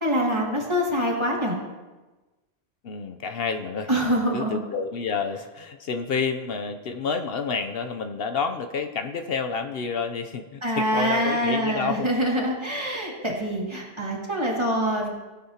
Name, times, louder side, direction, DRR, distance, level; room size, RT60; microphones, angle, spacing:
voice 1, 0.0-1.6 3.9-4.6 10.6-15.1, equal, 25° right, -3 dB, 2.2 m, -25 dB
voice 2, 2.8-12.1, left 5 dB, 70° left, 7 dB, 0.8 m, -29 dB
17.0 x 9.3 x 2.8 m, 1.2 s
omnidirectional pair, 1.1 m